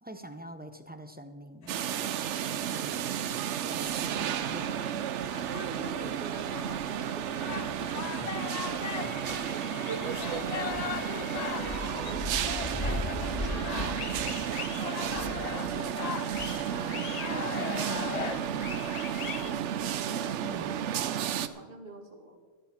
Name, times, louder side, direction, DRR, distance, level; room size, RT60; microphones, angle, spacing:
voice 1, 0.0-1.8 2.6-3.1 3.6-5.1 16.5-18.9 20.4-20.8, right 1 dB, 10° right, 8 dB, 0.6 m, -45 dB
sound 1, 1.6-19.5, left 7 dB, 60° left, 0.4 m, -40 dB
sound 2, 1.7-21.5, right 10 dB, 70° right, 0.9 m, -33 dB
sound 3, 3.8-21.1, left 1 dB, 25° left, 1.8 m, -42 dB
voice 2, 3.8-4.1 5.5-10.6 12.0-15.6 19.4-19.8 20.1-22.4, right 2 dB, 45° right, 2 dB, 2.3 m, -48 dB
14.5 x 13.0 x 4.4 m, 1.4 s
omnidirectional pair, 1.3 m